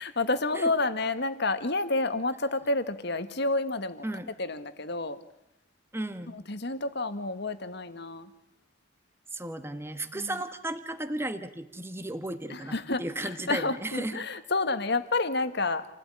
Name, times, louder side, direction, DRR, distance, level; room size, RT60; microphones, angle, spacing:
voice 1, 0.0-4.1 4.4-5.2 6.3-8.3 10.1-10.4 12.5-15.9, left 2 dB, 60° left, 11 dB, 1.8 m, -29 dB
voice 2, 5.9-6.4 9.3-14.2, right 1 dB, 15° right, 9 dB, 1.5 m, -35 dB
28.5 x 17.5 x 10.0 m, 0.84 s
head